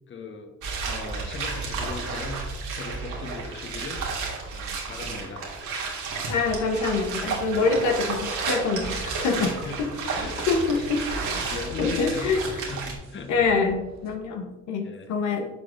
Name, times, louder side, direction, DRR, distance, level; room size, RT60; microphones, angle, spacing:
voice 1, 0.1-0.5 0.8-2.4 2.7-4.1 4.5-5.5 9.3-9.8 10.1-12.3 12.7-13.3 14.8-15.1, left 4 dB, 40° left, 4 dB, 1.1 m, -39 dB
sound 1, 0.6-12.9, right 4 dB, 85° right, 1.9 m, -32 dB
voice 2, 6.3-9.5 10.5-11.0 11.8-12.6 13.3-15.5, left 4 dB, 75° left, 4 dB, 1.0 m, -25 dB
sound 2, 6.6-14.1, right 3 dB, 65° right, 1.0 m, -45 dB
10.5 x 6.1 x 2.5 m, 1.1 s
cardioid pair, 90°, 30 cm